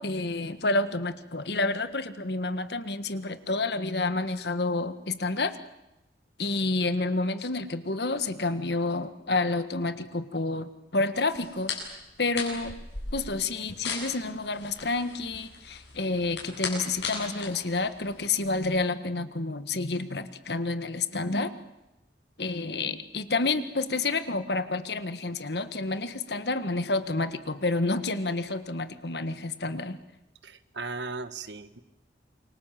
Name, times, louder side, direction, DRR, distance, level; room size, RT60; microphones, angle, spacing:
voice 1, 0.0-5.5 6.4-11.7 12.2-12.8 13.1-21.5 22.4-30.0, left 3 dB, 65° left, 11 dB, 1.7 m, -29 dB
sound 1, 11.3-18.6, left 5 dB, 85° left, 8.0 m, -38 dB
voice 2, 30.4-31.8, right 3 dB, 85° right, 12 dB, 1.5 m, -37 dB
28.0 x 24.5 x 7.7 m, 0.95 s
head